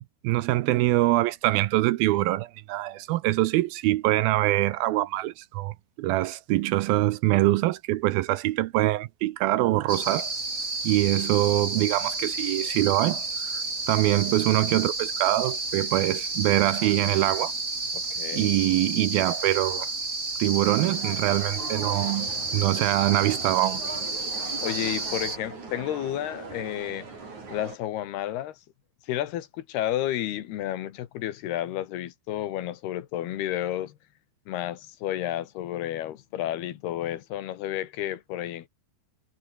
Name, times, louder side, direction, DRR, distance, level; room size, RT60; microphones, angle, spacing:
voice 1, 0.2-10.3 10.8-17.5 18.3-19.9 20.4-23.8, right 17 dB, 75° right, 2.4 m, -24 dB
sound 1, 9.9-25.4, right 3 dB, 20° right, 3.8 m, -31 dB
voice 2, 17.9-18.5 24.6-27.1 27.5-28.6 29.1-34.0 34.5-38.7, left 12 dB, 80° left, 3.5 m, -31 dB
sound 2, 20.8-27.8, right 4 dB, 45° right, 7.4 m, -40 dB
omnidirectional pair, 4.6 m